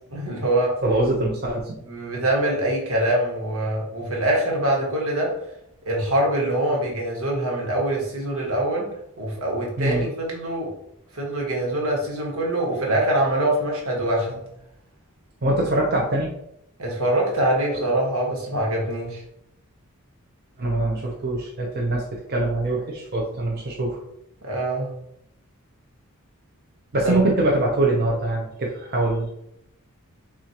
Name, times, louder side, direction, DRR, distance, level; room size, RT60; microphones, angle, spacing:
voice 1, 0.1-0.8 1.8-5.3 5.9-8.9 9.2-10.7 11.1-14.4 16.8-19.2 24.4-24.9 27.0-27.1, right 1 dB, 85° right, -2 dB, 1.4 m, -24 dB
voice 2, 0.8-1.8 9.8-10.0 15.4-16.3 20.6-24.0 26.9-29.3, right 2 dB, 45° right, -2 dB, 0.6 m, -23 dB
6.1 x 2.5 x 2.8 m, 0.77 s
head